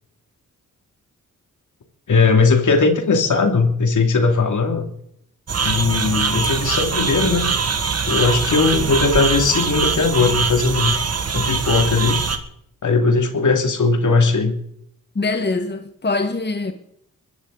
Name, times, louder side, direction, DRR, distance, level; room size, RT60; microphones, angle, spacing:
voice 1, 2.1-4.9 5.6-7.5 8.1-11.0 11.3-12.2 12.8-14.6, left 4 dB, 65° left, 2.5 m, -18 dB
sound 1, 5.5-12.4, right 5 dB, 50° right, 1.8 m, -22 dB
voice 2, 15.1-16.7, left 3 dB, 30° left, 1.5 m, -23 dB
22.0 x 14.0 x 3.9 m
cardioid pair, 50°, 33 cm